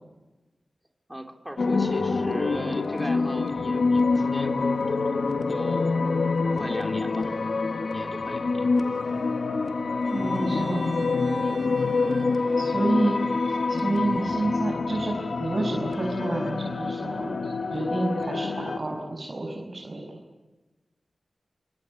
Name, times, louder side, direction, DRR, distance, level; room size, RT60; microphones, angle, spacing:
voice 1, 1.1-6.0 6.5-7.3 7.9-8.7 11.4-11.6 12.9-13.1, right 1 dB, 5° right, 3 dB, 3.3 m, -38 dB
sound 1, 1.6-18.8, left 4 dB, 75° left, 1.7 m, -26 dB
Bowed string instrument, 10.0-14.6, right 2 dB, 60° right, 4.3 m, -45 dB
voice 2, 10.1-11.1 12.5-13.2 13.7-20.2, right 2 dB, 40° right, -1 dB, 6.0 m, -29 dB
27.0 x 25.0 x 8.6 m, 1.1 s
wide cardioid pair, 100°, 0 cm